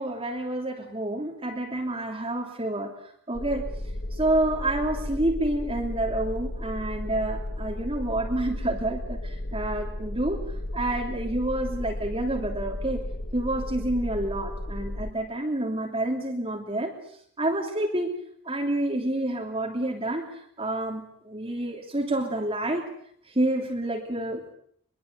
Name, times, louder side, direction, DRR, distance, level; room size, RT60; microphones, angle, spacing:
voice 1, 0.0-3.7 4.1-10.4 10.7-13.1 13.3-17.0 17.4-18.1 18.4-22.9 23.3-24.5, right 1 dB, 25° right, 1 dB, 3.1 m, -28 dB
sound 1, 3.3-15.1, left 1 dB, 55° left, 2.4 m, -34 dB
25.0 x 23.0 x 8.2 m, 0.64 s
head